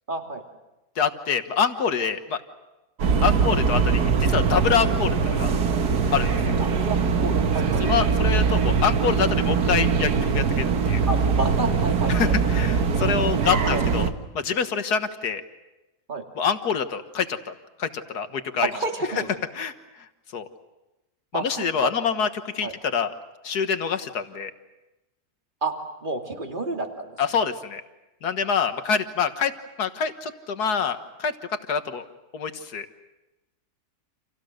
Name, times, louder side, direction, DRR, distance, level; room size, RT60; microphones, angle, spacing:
voice 1, 0.1-0.4 6.6-7.8 11.1-12.3 13.4-13.9 16.1-16.3 18.6-19.3 21.3-21.9 22.6-22.8 25.6-25.7 26.0-27.2, right 2 dB, 30° right, 3 dB, 2.8 m, -30 dB
voice 2, 1.0-2.4 3.2-5.5 6.1-6.4 7.8-11.0 12.1-14.1 14.3-15.4 16.4-17.5 17.8-18.7 19.5-19.7 20.3-20.5 21.3-22.3 22.5-23.1 23.4-24.5 27.2-27.8 28.2-29.5 29.8-31.3 31.7-32.0 32.3-32.9, left 6 dB, 80° left, 9 dB, 1.9 m, -26 dB
sound 1, 3.0-14.1, right 5 dB, 80° right, 1.9 m, -22 dB
30.0 x 28.0 x 6.6 m, 1.0 s
omnidirectional pair, 1.7 m